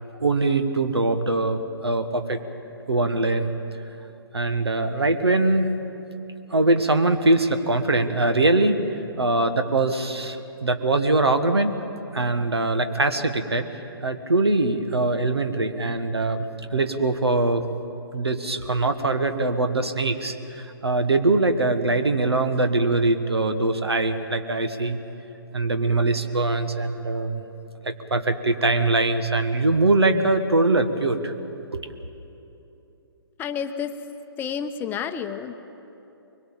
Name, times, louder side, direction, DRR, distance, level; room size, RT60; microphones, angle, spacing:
voice 1, 0.2-2.4 2.9-3.5 4.3-5.7 6.5-8.8 9.2-11.7 12.1-13.7 14.0-17.6 18.1-25.0 25.5-27.4 27.8-31.3 31.7-32.0, right 2 dB, 85° right, 9 dB, 1.6 m, -22 dB
voice 2, 33.4-33.9 34.4-35.5, left 7 dB, 15° left, 8 dB, 0.7 m, -30 dB
23.5 x 22.0 x 7.3 m, 3.0 s
figure-of-eight pair, 135°, 13 cm